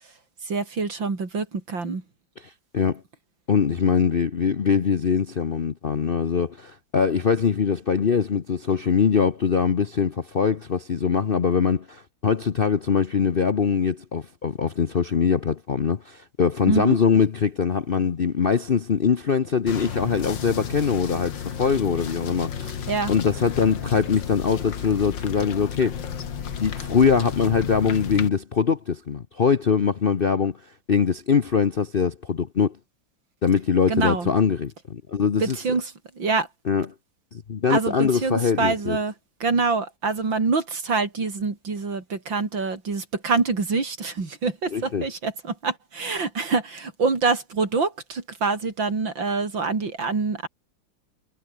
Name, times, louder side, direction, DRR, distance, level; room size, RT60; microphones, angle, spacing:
voice 1, 0.5-2.0 16.7-17.0 22.9-23.1 33.9-34.3 35.4-35.9 36.2-36.5 37.7-39.1 39.4-50.5, right 4 dB, 80° right, 4.5 m, -25 dB
voice 2, 2.4-3.0 3.5-26.0 26.6-30.6 30.9-32.8 33.4-35.6 36.6-36.9 37.3-39.0 44.7-45.1, left 6 dB, 45° left, 0.7 m, -22 dB
sound 1, 19.7-28.3, left 8 dB, 75° left, 2.3 m, -33 dB
omnidirectional pair, 2.0 m